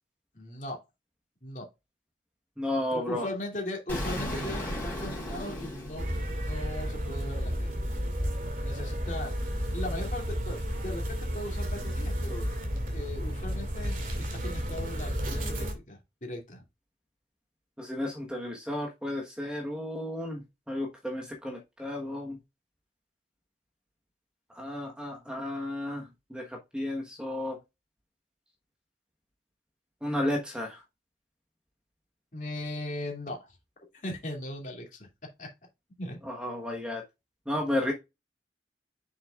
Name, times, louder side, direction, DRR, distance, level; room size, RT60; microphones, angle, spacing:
voice 1, 0.3-0.8 1.4-1.7 2.9-6.1 6.4-7.8 8.6-10.6 10.8-12.5 12.9-16.6 32.3-33.6 34.0-35.1 35.4-35.5 36.0-36.2, left 1 dB, 45° left, 2.6 m, -38 dB
voice 2, 2.6-3.3 17.8-20.4 20.7-22.4 24.5-27.6 30.0-30.8 36.2-37.0 37.5-37.9, left 1 dB, 5° right, 1.3 m, -33 dB
Explosion, 3.9-6.8, equal, 10° left, 4.3 m, -35 dB
sound 1, 6.0-15.7, equal, 50° right, 2.3 m, -32 dB
7.0 x 6.5 x 2.4 m
head